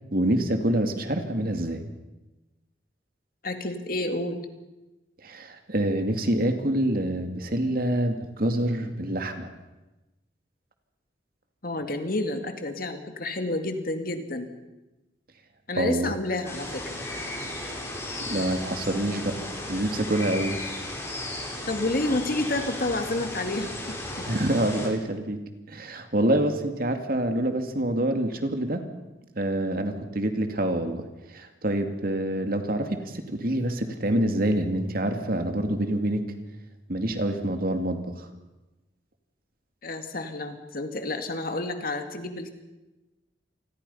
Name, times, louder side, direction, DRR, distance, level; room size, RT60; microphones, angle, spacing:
voice 1, 0.1-1.8 5.2-9.5 15.7-16.1 18.2-19.4 19.7-20.6 24.3-25.4 25.7-28.8 29.4-31.1 31.3-36.2 36.9-38.0, right 1 dB, 50° right, 6 dB, 2.4 m, -26 dB
voice 2, 3.4-4.4 11.6-14.5 15.7-17.0 21.7-24.3 39.8-42.5, left 2 dB, 50° left, 6 dB, 2.3 m, -30 dB
sound 1, 16.4-24.9, left 1 dB, 15° left, 4.5 m, -35 dB
28.0 x 21.5 x 5.6 m, 1.1 s
head